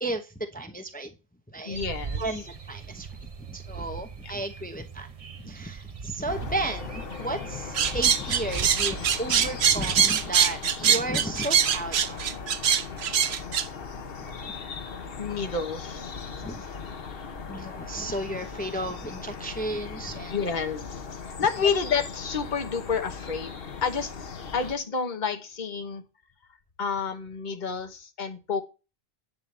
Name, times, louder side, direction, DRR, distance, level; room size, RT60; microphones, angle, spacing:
voice 1, 0.0-1.1 1.5-1.8 2.2-5.1 5.4-12.2 14.4-14.5 16.4-16.7 17.5-20.3, right 1 dB, 10° left, 0.9 m, -34 dB
voice 2, 1.6-2.5 6.1-6.2 12.3-12.4 15.2-16.1 20.3-24.1 24.5-26.0 26.8-28.6, left 5 dB, 50° left, 1.3 m, -30 dB
sound 1, 1.7-10.0, right 5 dB, 35° right, 0.8 m, -39 dB
sound 2, 6.3-24.8, left 5 dB, 65° left, 1.2 m, -38 dB
sound 3, 7.8-13.7, right 8 dB, 85° right, 1.0 m, -23 dB
10.5 x 3.9 x 6.8 m
omnidirectional pair, 1.1 m